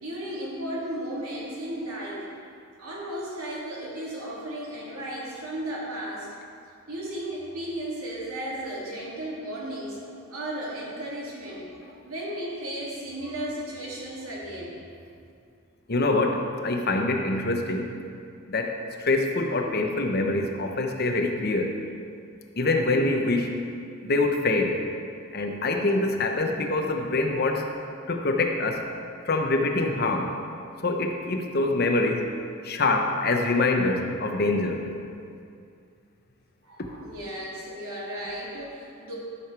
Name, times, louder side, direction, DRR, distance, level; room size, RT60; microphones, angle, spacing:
voice 1, 0.0-2.3 2.8-6.3 6.9-10.0 10.2-14.8 36.6-39.2, right 1 dB, 85° right, -5 dB, 2.7 m, -35 dB
voice 2, 15.9-17.9 18.5-21.8 22.6-23.6 24.0-24.8 25.3-27.7 28.1-28.8 29.2-30.3 30.8-32.3 32.6-34.8, left 2 dB, 45° left, 3 dB, 0.9 m, -25 dB
12.5 x 6.8 x 4.7 m, 2.4 s
head